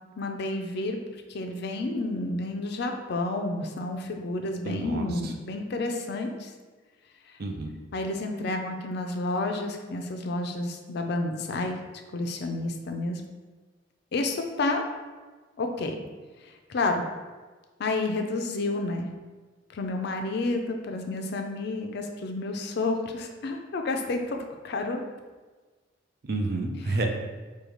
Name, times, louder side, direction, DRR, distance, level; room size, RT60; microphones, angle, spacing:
voice 1, 0.2-1.0 1.3-6.5 7.9-11.8 12.1-13.2 14.1-14.8 15.6-16.0 16.4-17.0 17.8-19.1 19.7-25.0, left 2 dB, 60° left, 4 dB, 0.4 m, -30 dB
voice 2, 4.6-5.3 7.4-7.8 26.2-27.1, right 2 dB, 55° right, 3 dB, 0.5 m, -30 dB
4.9 x 2.3 x 3.0 m, 1.3 s
head